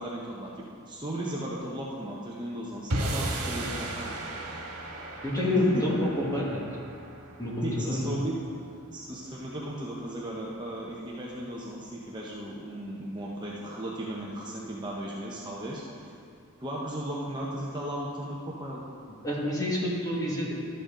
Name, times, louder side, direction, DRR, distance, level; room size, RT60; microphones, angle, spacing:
voice 1, 0.0-4.2 5.3-5.9 7.6-8.4 8.9-16.1 16.6-18.8, right 1 dB, 20° right, -5 dB, 0.9 m, -36 dB
sound 1, 2.9-9.3, right 1 dB, 75° right, 1.6 m, -36 dB
voice 2, 5.2-6.6 7.4-8.0 19.2-20.5, left 1 dB, 15° left, -4 dB, 1.7 m, -28 dB
12.5 x 7.9 x 3.8 m, 2.4 s
head